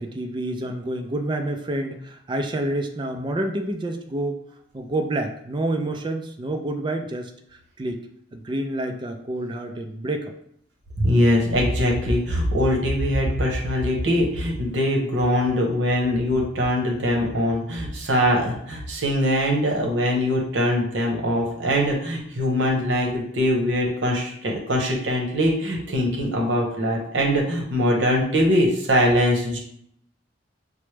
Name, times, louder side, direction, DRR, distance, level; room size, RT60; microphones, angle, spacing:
voice 1, 0.0-4.4 4.7-8.0 8.3-10.3, right 1 dB, 25° right, 5 dB, 0.3 m, -28 dB
voice 2, 11.0-29.6, equal, 70° right, 0 dB, 0.9 m, -22 dB
4.4 x 2.0 x 3.2 m, 0.70 s
head